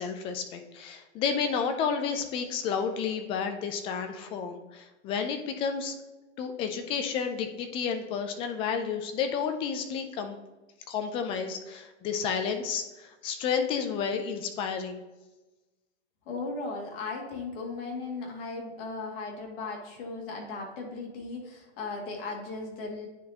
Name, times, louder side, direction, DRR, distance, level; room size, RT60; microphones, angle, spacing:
voice 1, 0.0-6.0 6.4-10.4 10.9-15.0, left 6 dB, 15° left, 7 dB, 0.3 m, -31 dB
voice 2, 16.3-23.1, left 3 dB, 50° left, 0 dB, 2.2 m, -37 dB
9.7 x 4.2 x 2.8 m, 1.1 s
hypercardioid pair, 135°, 35 cm